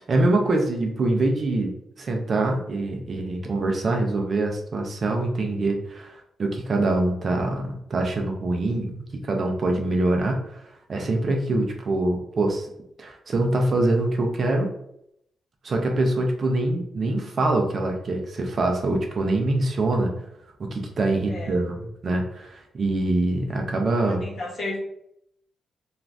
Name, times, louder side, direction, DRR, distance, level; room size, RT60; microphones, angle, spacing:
voice 1, 0.1-1.7 2.0-10.6 10.9-12.7 13.0-14.7 15.6-20.1 20.6-24.3, right 2 dB, 40° right, 2 dB, 0.5 m, -24 dB
voice 2, 21.3-21.6 24.0-24.8, left 2 dB, 45° left, -4 dB, 1.0 m, -33 dB
2.4 x 2.4 x 3.2 m, 0.75 s
cardioid pair, 140°, 0 cm